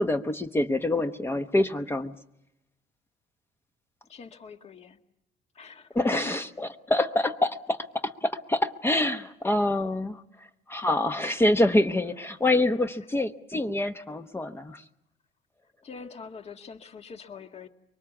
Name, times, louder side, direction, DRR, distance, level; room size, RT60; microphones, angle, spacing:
voice 1, 0.0-2.2 5.9-14.8, left 1 dB, 15° left, 7 dB, 1.0 m, -26 dB
voice 2, 4.0-5.0 5.5-6.2 15.8-17.7, left 5 dB, 40° left, 5 dB, 1.9 m, -44 dB
24.5 x 23.5 x 7.1 m, 0.85 s
cardioid pair, 110°, 17 cm